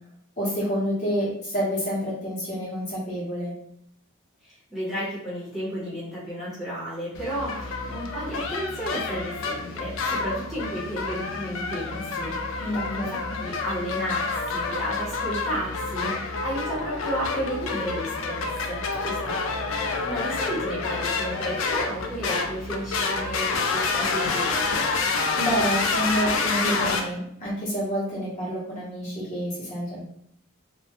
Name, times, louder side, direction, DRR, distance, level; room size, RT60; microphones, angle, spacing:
voice 1, 0.4-3.5 12.6-13.4 19.0-19.4 25.4-30.0, equal, 30° left, -7 dB, 0.8 m, -28 dB
voice 2, 4.4-18.8 20.1-24.9, equal, ahead, -10 dB, 0.7 m, -33 dB
sound 1, 7.1-27.0, left 4 dB, 60° left, 0.3 m, -28 dB
2.2 x 2.1 x 2.8 m, 0.70 s
head